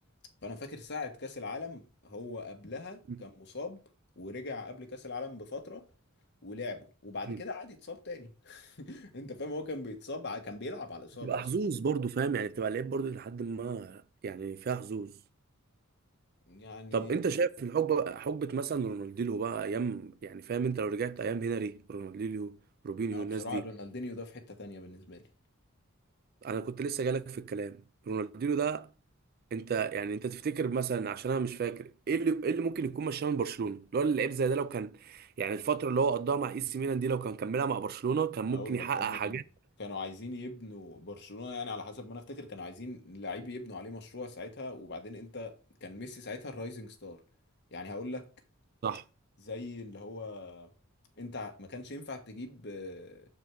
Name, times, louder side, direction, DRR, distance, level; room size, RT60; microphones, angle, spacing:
voice 1, 0.4-3.8 4.2-5.8 6.4-11.4 16.5-17.1 23.1-25.2 38.5-39.4 39.8-45.5 45.8-47.2 47.7-48.3 49.4-50.7 51.2-53.2, left 3 dB, 55° left, 1.3 m, -41 dB
voice 2, 11.2-15.2 16.9-22.6 22.8-23.6 26.4-28.9 29.5-39.4 48.8-49.0, right 5 dB, 45° right, 0.4 m, -32 dB
6.7 x 4.4 x 4.5 m
head